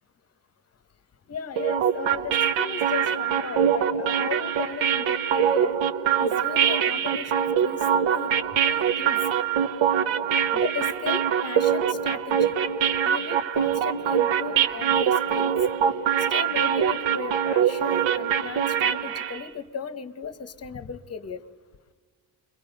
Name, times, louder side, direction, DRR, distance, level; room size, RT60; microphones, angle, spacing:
voice 1, 1.3-5.8 6.2-7.9 8.1-8.3 8.7-9.2 10.5-12.6 13.0-15.6 16.3-21.4, left 6 dB, 35° left, 12 dB, 1.0 m, -36 dB
sound 1, 1.6-19.4, right 8 dB, 80° right, 1.2 m, -23 dB
29.5 x 23.5 x 5.3 m, 1.5 s
cardioid pair, 165°, 46 cm